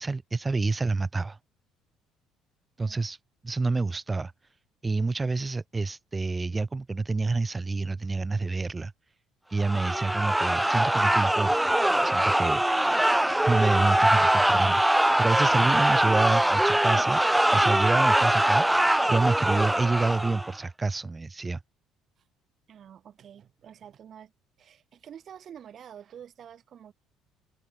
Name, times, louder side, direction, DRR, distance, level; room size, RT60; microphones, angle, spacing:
voice 1, 0.0-1.4 2.8-3.2 3.4-4.3 4.8-8.9 9.5-11.5 12.0-12.6 13.5-17.2 17.5-21.6, right 3 dB, 20° right, 3.5 m, -28 dB
sound 1, 9.6-20.5, right 1 dB, 5° right, 0.8 m, -22 dB
voice 2, 22.7-24.3 24.6-26.9, right 9 dB, 50° right, 6.9 m, -48 dB
hypercardioid pair, 55°, 0 cm